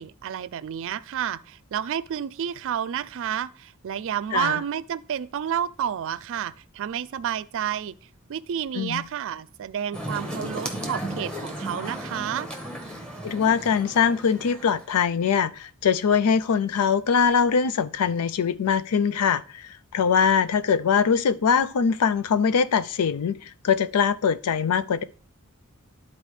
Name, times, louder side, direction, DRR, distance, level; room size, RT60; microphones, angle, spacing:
voice 1, 0.0-8.0 8.3-12.5, right 9 dB, 60° right, 0.3 m, -30 dB
sound 1, 9.9-15.0, right 1 dB, 5° left, 1.1 m, -35 dB
voice 2, 13.2-25.0, left 6 dB, 85° left, 0.4 m, -22 dB
12.0 x 4.2 x 3.2 m
head